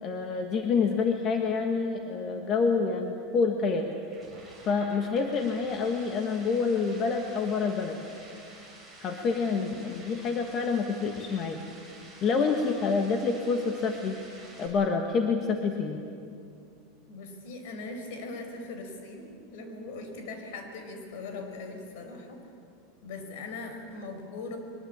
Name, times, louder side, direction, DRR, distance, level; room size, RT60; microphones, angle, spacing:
voice 1, 0.0-3.9 4.7-8.0 9.0-11.6 12.2-14.2 14.6-16.0, left 5 dB, 30° left, 4 dB, 1.5 m, -27 dB
sound 1, 3.7-14.7, right 2 dB, 5° left, 5.9 m, -50 dB
voice 2, 17.1-22.4 23.0-24.6, left 3 dB, 60° left, 5 dB, 4.9 m, -40 dB
23.0 x 20.5 x 8.8 m, 2.5 s
supercardioid pair, 160°, 0 cm